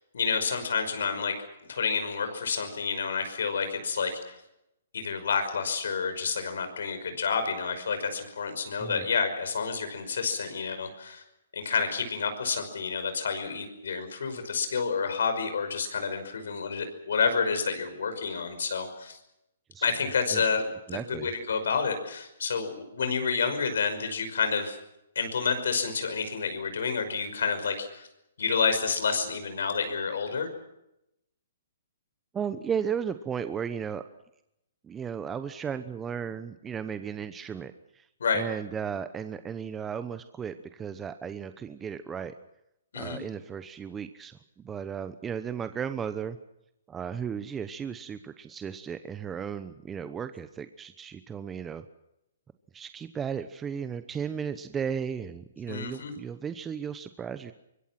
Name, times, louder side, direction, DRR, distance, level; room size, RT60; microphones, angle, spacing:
voice 1, 0.1-1.3 1.7-4.4 4.9-11.2 11.5-19.2 19.8-24.8 25.2-28.1 28.4-30.5 38.2-38.4 42.9-43.2 55.7-56.1, left 5 dB, 80° left, 8 dB, 5.5 m, -29 dB
voice 2, 20.9-21.3 32.3-34.0 34.8-38.1 38.3-42.3 42.9-46.4 46.9-51.8 52.7-57.5, right 7 dB, 15° right, 10 dB, 0.9 m, -35 dB
25.0 x 22.0 x 6.0 m, 0.85 s
hypercardioid pair, 145°, 0 cm